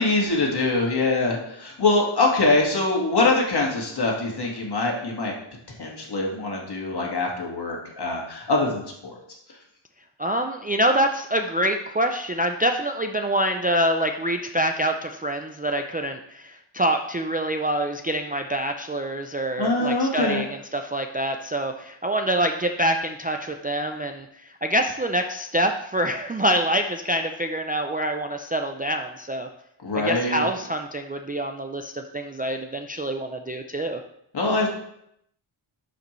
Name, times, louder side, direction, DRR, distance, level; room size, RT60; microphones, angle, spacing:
voice 1, 0.0-5.3 5.8-9.2 19.6-20.5 29.8-30.5 34.3-34.7, left 2 dB, 50° left, -1 dB, 1.8 m, -23 dB
voice 2, 10.2-29.5 30.0-34.0, right 1 dB, 20° right, 4 dB, 0.3 m, -26 dB
11.5 x 5.1 x 3.1 m, 0.76 s
wide cardioid pair, 130°, 49 cm